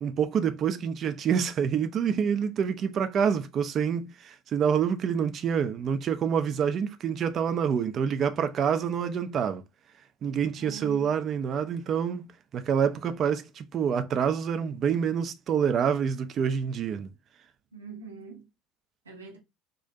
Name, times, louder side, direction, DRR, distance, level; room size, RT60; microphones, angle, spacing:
voice 1, 0.0-9.6 10.2-12.3 12.5-17.1, right 7 dB, 40° right, 0.3 m, -27 dB
voice 2, 10.6-11.1 17.7-18.5 19.0-19.4, right 6 dB, 80° right, 0.7 m, -43 dB
2.4 x 2.1 x 2.5 m
figure-of-eight pair, 65°, 0 cm